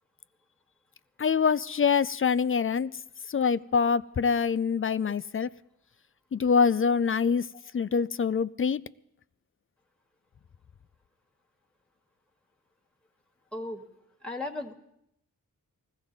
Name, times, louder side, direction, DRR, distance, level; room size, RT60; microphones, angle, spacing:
voice 1, 1.2-2.9 3.3-5.5 6.3-7.5 7.7-8.8, left 6 dB, 40° left, 17 dB, 0.5 m, -25 dB
voice 2, 13.5-13.8 14.2-14.7, left 2 dB, 5° left, 2 dB, 1.7 m, -36 dB
20.0 x 15.0 x 4.0 m, 0.78 s
cardioid pair, 45°, 35 cm